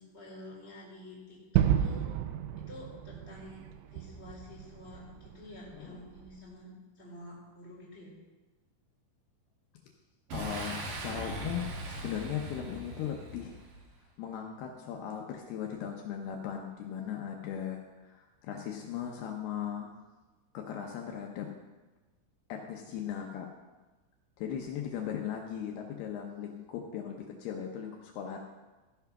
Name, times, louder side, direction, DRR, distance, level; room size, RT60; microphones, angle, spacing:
voice 1, 0.0-2.1 2.6-8.1, left 1 dB, 15° left, -5 dB, 2.9 m, -49 dB
Gunshot gunfire / Fireworks / Boom, 1.6-6.4, right 10 dB, 85° right, 3.0 m, -32 dB
voice 2, 10.3-13.6 14.2-19.9 20.5-21.5 22.5-23.5 24.4-28.4, left 9 dB, 90° left, 2 dB, 2.2 m, -38 dB
Boom, 10.3-13.9, right 1 dB, 60° right, 2.4 m, -40 dB
14.0 x 5.9 x 5.9 m, 1.2 s
omnidirectional pair, 5.7 m